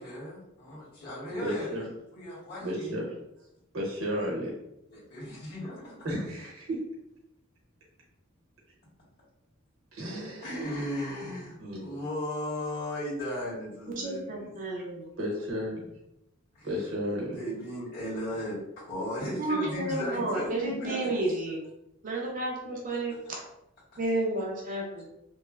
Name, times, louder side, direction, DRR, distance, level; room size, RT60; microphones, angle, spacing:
voice 1, 0.0-1.7 2.1-2.9 4.9-6.0 10.4-14.5 16.5-16.7 17.3-21.4, equal, 50° left, -9 dB, 1.4 m, -36 dB
voice 2, 1.4-1.9 2.6-3.1 3.7-4.5 6.0-6.8 9.9-10.5 11.6-12.0 15.2-15.9 16.6-17.4, equal, 70° right, -3 dB, 1.0 m, -33 dB
voice 3, 13.9-15.1 19.4-21.6 22.0-23.4 24.0-25.1, right 2 dB, 40° right, -1 dB, 0.5 m, -31 dB
3.0 x 2.0 x 2.3 m, 0.85 s
head